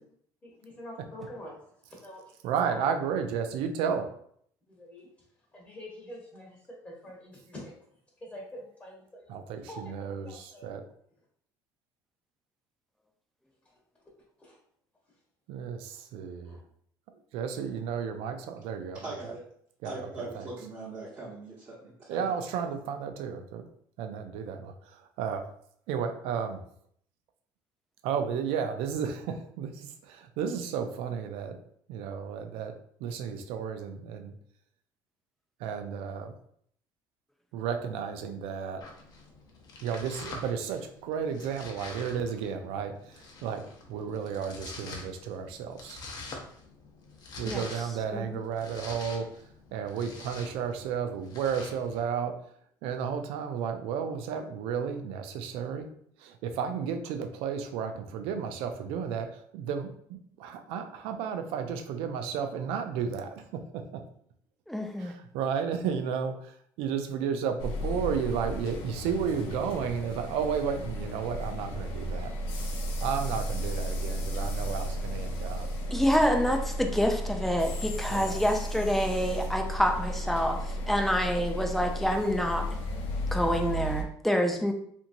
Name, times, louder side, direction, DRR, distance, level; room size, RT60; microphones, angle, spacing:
voice 1, 0.4-1.6 1.9-2.3 2.6-2.8 4.7-5.1 5.5-6.6 6.8-7.7 8.2-9.3 9.7-10.7 14.4-14.6 16.5-16.6, left 1 dB, 20° left, -4 dB, 0.9 m, -45 dB
voice 2, 2.4-4.1 9.3-10.8 15.5-16.6 17.3-19.0 19.8-20.5 22.1-23.7 24.0-25.5 25.9-26.6 28.0-31.6 31.9-32.7 33.0-34.3 35.6-36.3 37.5-38.8 39.8-46.0 47.4-49.3 49.7-52.4 52.8-55.9 56.2-63.8 65.0-72.3 73.0-75.7 78.1-78.4, right 7 dB, 80° right, 7 dB, 0.4 m, -33 dB
voice 3, 18.9-19.4 19.8-22.3, right 2 dB, 35° right, -7 dB, 0.9 m, -41 dB
Domestic sounds home sounds, 38.8-52.0, left 3 dB, 45° left, 0.7 m, -46 dB
voice 4, 64.7-65.1 75.9-82.7 83.3-84.7, equal, ahead, 4 dB, 0.4 m, -27 dB
sound 1, 67.6-84.0, equal, 85° left, 0.6 m, -34 dB
2.9 x 2.6 x 2.6 m, 0.65 s
cardioid pair, 105°, 9 cm